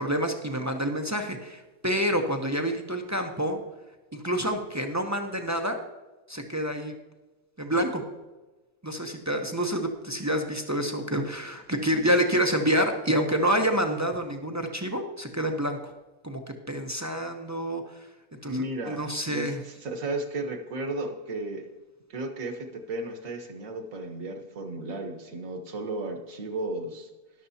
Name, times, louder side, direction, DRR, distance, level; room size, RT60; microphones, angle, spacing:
voice 1, 0.0-3.6 4.1-5.8 6.3-6.9 7.6-8.0 8.8-15.9 16.2-16.4 16.7-18.1 18.4-19.6, equal, 20° right, 4 dB, 0.5 m, -28 dB
voice 2, 18.4-21.7 22.1-27.1, right 2 dB, 65° right, 5 dB, 1.6 m, -34 dB
13.5 x 11.0 x 2.8 m, 1.2 s
omnidirectional pair, 1.5 m